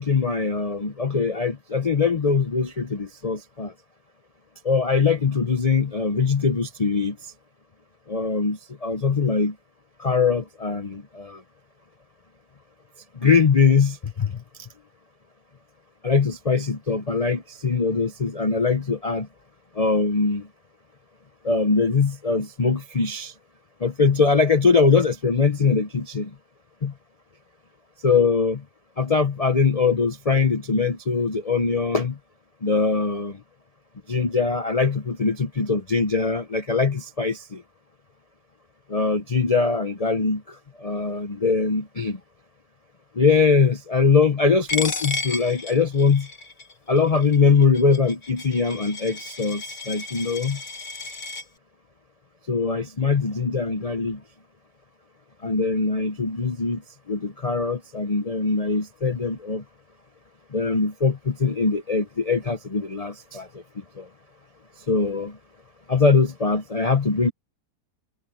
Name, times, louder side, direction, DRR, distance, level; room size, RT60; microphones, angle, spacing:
voice 1, 0.0-3.7 4.6-7.2 8.1-9.5 10.0-11.4 13.2-14.3 14.6-14.7 16.0-19.3 19.8-20.5 21.4-23.3 23.8-26.3 26.8-26.9 28.0-28.6 29.0-32.2 32.6-33.4 34.1-37.6 38.9-42.2 43.2-46.3 46.9-50.6 52.5-54.2 55.4-56.8 57.1-59.6 60.5-63.5 64.0-64.1 64.9-65.4 65.9-67.3, left 4 dB, 55° left, 0.4 m, -22 dB
Coin (dropping), 44.7-51.4, left 3 dB, 30° left, 1.2 m, -33 dB
omnidirectional pair, 2.0 m